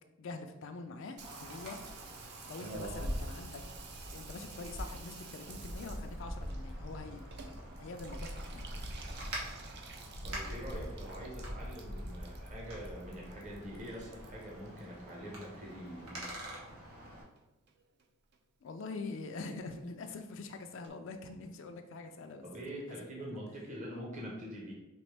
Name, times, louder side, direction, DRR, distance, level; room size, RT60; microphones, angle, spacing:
voice 1, 0.2-1.8 2.5-3.6 4.1-7.3 7.8-8.7 18.6-22.8 23.3-23.4, left 3 dB, 65° left, 5 dB, 0.4 m, -44 dB
Water tap faucet / Bathtub (filling or washing), 1.2-15.7 16.0-16.7 17.1-17.2 17.4-17.5 17.7-18.1 18.3-18.4 18.7-18.8 19.0-19.1 19.4-19.5 19.7-19.8 20.1-20.2 20.4-20.5 20.8-20.9, right 4 dB, 55° right, 0.5 m, -51 dB
Wind, 1.2-17.2, equal, 90° right, 1.4 m, -44 dB
voice 2, 10.2-16.4 22.4-24.7, equal, 40° right, -3 dB, 0.9 m, -44 dB
5.1 x 2.9 x 3.3 m, 1.0 s
head